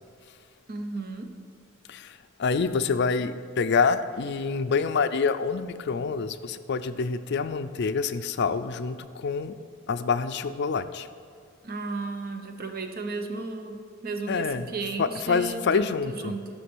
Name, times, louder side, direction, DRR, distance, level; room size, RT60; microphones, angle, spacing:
voice 1, 0.7-1.3 11.6-16.5, right 3 dB, 50° right, 6 dB, 0.9 m, -34 dB
voice 2, 1.9-9.5 9.9-11.1 14.3-14.7 15.0-16.3, left 5 dB, 60° left, 12 dB, 0.5 m, -27 dB
13.0 x 5.9 x 6.2 m, 2.4 s
head